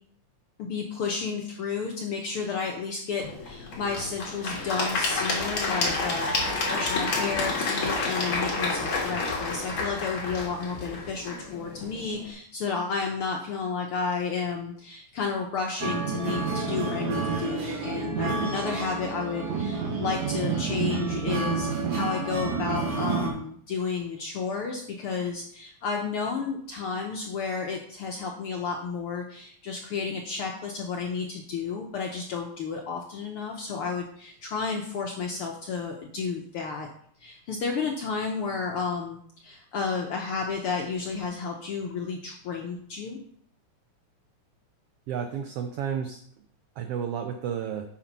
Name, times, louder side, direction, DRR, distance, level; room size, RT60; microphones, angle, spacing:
voice 1, 0.6-36.9 37.2-43.2, left 5 dB, 70° left, 1 dB, 1.3 m, -32 dB
Applause / Crowd, 3.2-12.3, left 3 dB, 45° left, 2.5 m, -30 dB
sound 1, 5.4-11.1, equal, 20° right, 1.9 m, -43 dB
sound 2, 15.8-23.3, right 5 dB, 60° right, 2.6 m, -29 dB
voice 2, 45.1-46.2 46.8-47.8, right 8 dB, 85° right, 6 dB, 1.3 m, -31 dB
8.7 x 5.0 x 5.4 m, 0.63 s
omnidirectional pair, 3.5 m